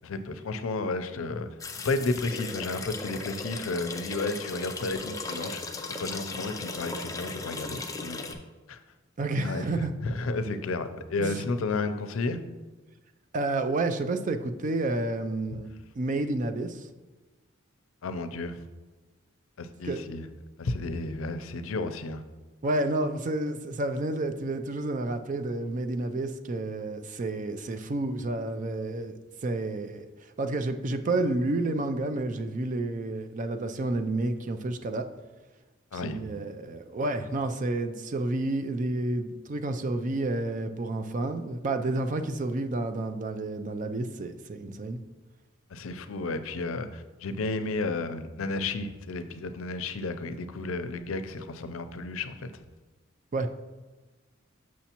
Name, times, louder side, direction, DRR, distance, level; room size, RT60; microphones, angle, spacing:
voice 1, 0.0-1.5 1.8-8.8 9.4-12.4 15.5-15.6 18.0-18.6 19.6-20.3 20.6-22.2 35.9-36.2 45.7-52.5, left 3 dB, 80° left, 10 dB, 0.5 m, -32 dB
sound 1, 1.6-8.3, left 3 dB, 15° left, 0.5 m, -37 dB
voice 2, 9.2-9.9 11.2-11.5 13.3-15.7 16.0-16.9 19.9-20.0 22.6-29.1 29.4-30.0 30.4-35.1 35.9-45.0 53.3-53.5, right 2 dB, 40° right, 8 dB, 0.4 m, -30 dB
6.9 x 6.2 x 2.9 m, 1.2 s
head